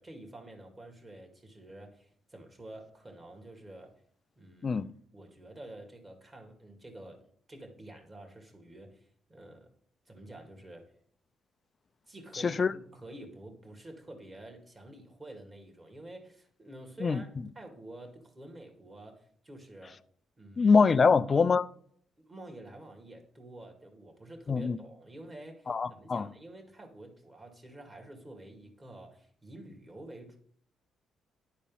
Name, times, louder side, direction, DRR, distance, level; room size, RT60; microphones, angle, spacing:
voice 1, 0.0-4.0 4.4-4.8 5.1-9.7 10.1-10.9 12.1-17.3 17.6-20.0 20.4-20.7 21.1-21.2 22.2-30.4, right 1 dB, 25° right, 2.2 m, -49 dB
voice 2, 20.6-21.6 24.5-24.8 25.7-26.3, left 5 dB, 35° left, 0.4 m, -24 dB
10.5 x 4.2 x 5.5 m
cardioid pair, 90°, 0 cm